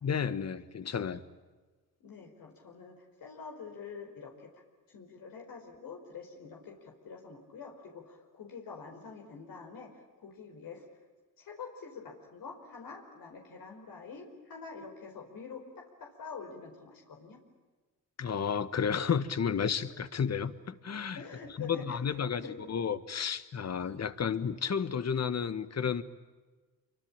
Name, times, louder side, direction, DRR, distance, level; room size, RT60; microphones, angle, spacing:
voice 1, 0.0-1.2 18.2-21.2 21.6-22.4 22.7-26.0, left 7 dB, 50° left, 13 dB, 1.6 m, -32 dB
voice 2, 2.0-4.5 4.9-10.9 11.4-17.4 21.1-22.0 22.4-22.6, left 5 dB, 75° left, 1 dB, 4.9 m, -46 dB
27.0 x 24.5 x 8.9 m, 1.3 s
cardioid pair, 80°, 34 cm